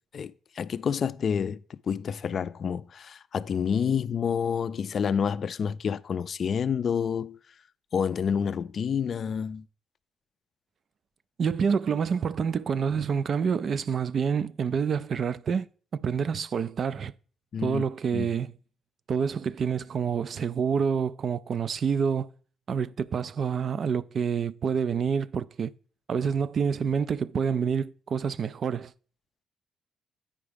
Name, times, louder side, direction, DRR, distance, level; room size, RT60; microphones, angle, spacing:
voice 1, 0.1-7.4 7.9-9.6 17.5-17.8 18.1-18.3, left 7 dB, 55° left, 0.3 m, -28 dB
voice 2, 11.4-17.1 17.6-18.5 19.1-22.3 22.7-25.7 26.1-28.9, right 6 dB, 55° right, 0.3 m, -27 dB
8.8 x 4.7 x 5.0 m
cardioid pair, 90°, 0 cm